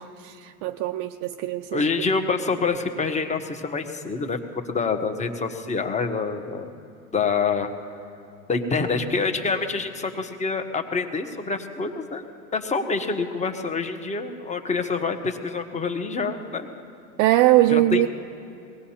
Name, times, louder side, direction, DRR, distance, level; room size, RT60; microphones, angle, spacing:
voice 1, 0.0-2.1 17.2-18.1, right 15 dB, 45° right, 7 dB, 0.5 m, -21 dB
voice 2, 1.7-4.4 4.7-6.7 7.1-7.7 8.5-12.2 12.5-16.7 17.7-18.1, left 4 dB, 15° left, 6 dB, 1.2 m, -26 dB
22.5 x 18.0 x 2.9 m, 2.7 s
hypercardioid pair, 95°, 44 cm